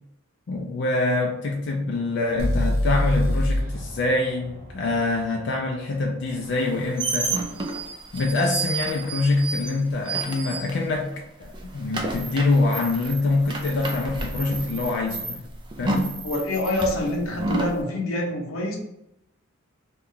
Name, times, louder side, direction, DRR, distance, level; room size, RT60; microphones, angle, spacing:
voice 1, 0.5-7.3 8.1-11.1 11.4-15.4 15.8-16.1, left 2 dB, 55° left, 0 dB, 0.4 m, -25 dB
sound 1, 2.4-6.3, left 1 dB, 45° right, 0.8 m, -26 dB
sound 2, 6.5-11.1 11.4-17.8, right 3 dB, 20° right, 0.4 m, -31 dB
voice 2, 16.2-18.8, left 1 dB, 85° left, 1 dB, 0.8 m, -26 dB
3.0 x 2.2 x 3.7 m, 0.86 s
head